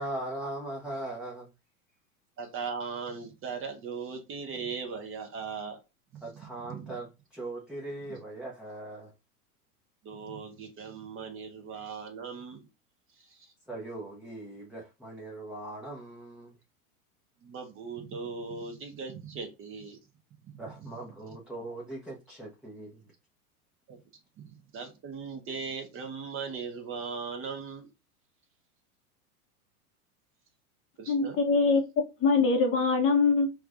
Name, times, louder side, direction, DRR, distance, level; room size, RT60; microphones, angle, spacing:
voice 1, 0.0-1.5 6.2-9.1 13.7-16.5 20.6-23.0, right 1 dB, ahead, 0.6 m, -40 dB
voice 2, 2.4-5.8 6.1-6.3 6.6-6.9 8.1-8.2 10.0-12.7 13.3-13.5 17.4-20.0 20.5-20.6 23.9-24.0 24.4-27.9 31.0-31.4, right 5 dB, 30° right, 0.9 m, -39 dB
voice 3, 31.1-31.8 32.2-33.5, left 4 dB, 30° left, 0.8 m, -23 dB
4.5 x 2.3 x 2.4 m
hypercardioid pair, 105°, 45 cm